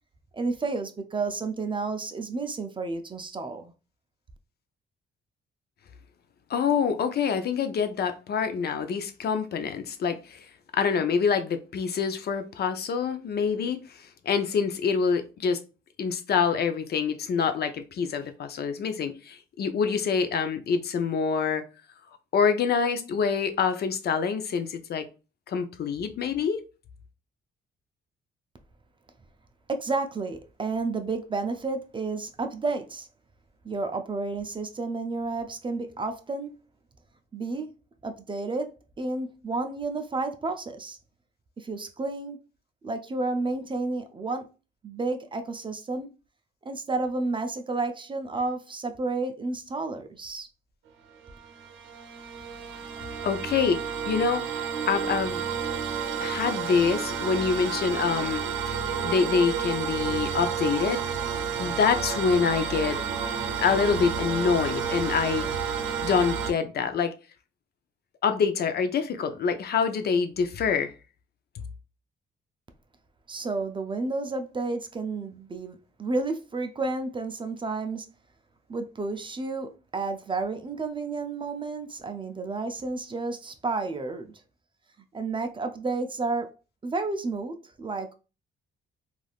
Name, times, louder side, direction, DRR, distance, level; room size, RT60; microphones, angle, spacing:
voice 1, 0.3-3.7 29.7-33.1 33.6-36.5 37.3-37.7 38.0-41.0 41.6-42.4 42.8-44.5 44.8-46.1 46.6-50.5 73.3-78.1 78.7-84.3 85.1-86.5 86.8-88.1, right 3 dB, 25° right, 0.4 m, -31 dB
voice 2, 6.5-10.5 10.7-15.6 16.0-21.6 22.3-25.0 25.5-26.6 53.2-53.8 54.1-54.4 54.9-55.4 56.2-58.4 58.7-58.8 59.0-61.0 61.6-63.0 63.6-65.5 66.0-67.1 68.2-70.9, left 6 dB, 55° left, 0.5 m, -26 dB
sound 1, 51.3-66.5, right 7 dB, 80° right, 0.6 m, -31 dB
3.3 x 2.5 x 2.3 m
cardioid pair, 90°, 20 cm